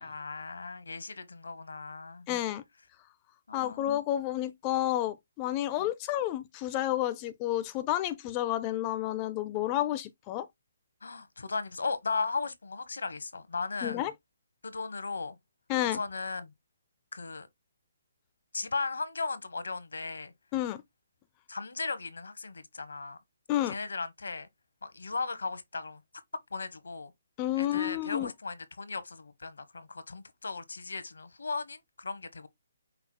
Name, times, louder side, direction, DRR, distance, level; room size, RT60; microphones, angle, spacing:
voice 1, 0.0-2.2 3.5-3.8 11.0-14.0 14.6-15.4 15.8-16.5 17.1-17.5 18.5-20.3 21.5-23.2 23.7-24.5 24.8-26.0 26.5-27.1 27.6-32.5, left 4 dB, 80° left, 1.0 m, -36 dB
voice 2, 2.3-2.6 3.5-10.5 13.8-14.1 15.7-16.0 20.5-20.8 23.5-23.7 27.4-28.3, left 13 dB, 25° left, 0.4 m, -30 dB
5.6 x 2.0 x 4.3 m
hypercardioid pair, 150°, 0 cm